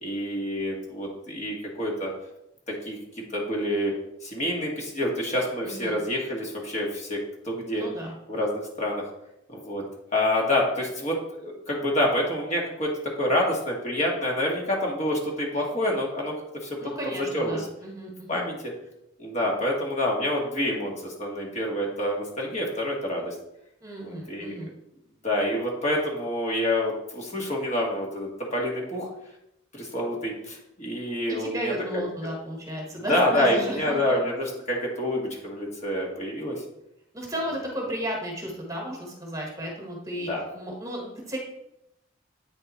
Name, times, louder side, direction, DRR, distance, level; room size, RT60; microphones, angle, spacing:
voice 1, 0.0-2.1 2.8-3.0 3.3-3.9 4.2-7.9 8.3-9.0 9.5-9.8 10.1-12.9 13.2-16.3 16.6-16.8 17.2-17.6 18.3-18.7 19.2-23.4 24.0-24.6 25.2-29.1 29.7-31.7 32.9-36.6 40.3-40.4, left 1 dB, 35° left, -1 dB, 1.4 m, -27 dB
voice 2, 5.6-6.0 7.7-8.1 16.8-18.4 23.8-24.7 31.3-34.2 37.1-41.4, equal, 20° right, -1 dB, 1.4 m, -34 dB
8.5 x 3.6 x 4.1 m, 0.82 s
head